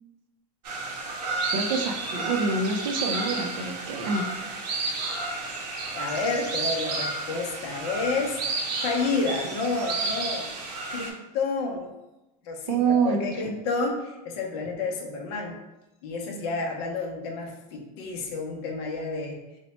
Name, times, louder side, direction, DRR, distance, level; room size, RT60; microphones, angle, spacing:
sound 1, 0.6-11.1, right 3 dB, 90° right, 0.8 m, -31 dB
voice 1, 1.5-4.3 12.7-13.5, right 4 dB, 55° right, 4 dB, 0.5 m, -26 dB
voice 2, 4.9-5.2 5.9-8.4 8.8-10.4 10.9-11.9 12.4-15.6 16.0-19.4, left 3 dB, 40° left, 0 dB, 0.5 m, -30 dB
2.9 x 2.1 x 4.1 m, 0.99 s
supercardioid pair, 175°, 20 cm